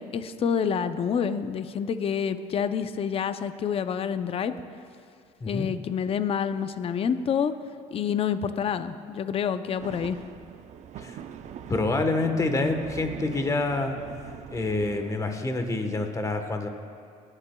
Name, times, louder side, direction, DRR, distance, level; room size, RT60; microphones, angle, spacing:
voice 1, 0.0-4.5 5.5-7.5 7.9-10.2, left 7 dB, 40° left, 11 dB, 0.6 m, -28 dB
sound 1, 9.8-15.4, right 8 dB, 50° right, 0.6 m, -42 dB
voice 2, 11.7-14.0 14.5-16.7, left 2 dB, 20° left, 6 dB, 1.2 m, -27 dB
21.0 x 9.8 x 2.3 m, 2.3 s
supercardioid pair, 95°, 15 cm